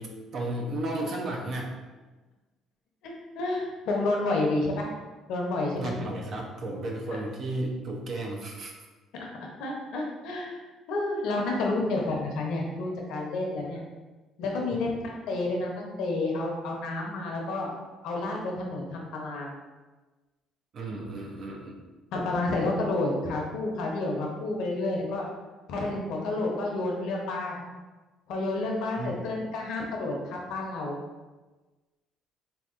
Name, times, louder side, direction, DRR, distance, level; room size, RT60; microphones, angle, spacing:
voice 1, 0.0-1.7 5.8-8.7 20.7-21.8 29.0-29.1, right 1 dB, 60° right, -1 dB, 0.6 m, -33 dB
voice 2, 3.0-4.9 5.3-5.9 7.1-7.2 9.6-10.6 10.9-13.8 14.4-17.7 18.0-19.5 22.1-25.3 25.7-27.6 28.3-31.0, left 2 dB, 75° left, -1 dB, 0.7 m, -30 dB
3.3 x 2.8 x 2.4 m, 1.2 s
supercardioid pair, 75°, 0 cm